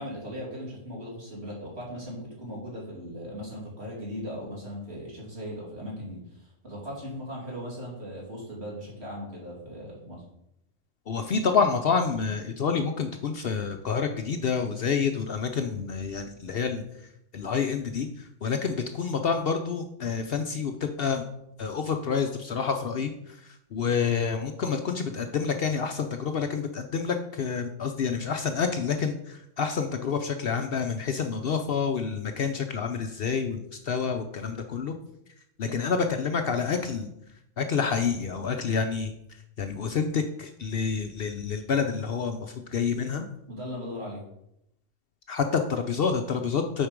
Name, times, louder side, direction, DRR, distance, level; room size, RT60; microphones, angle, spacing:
voice 1, 0.0-10.2 35.7-35.8 43.5-44.2, equal, 55° right, -5 dB, 3.0 m, -38 dB
voice 2, 11.1-16.8 17.3-21.2 21.6-34.9 35.6-37.1 37.6-39.1 39.6-43.3 45.3-46.9, left 6 dB, 60° left, 6 dB, 0.7 m, -28 dB
7.7 x 4.5 x 5.1 m, 0.79 s
omnidirectional pair, 1.3 m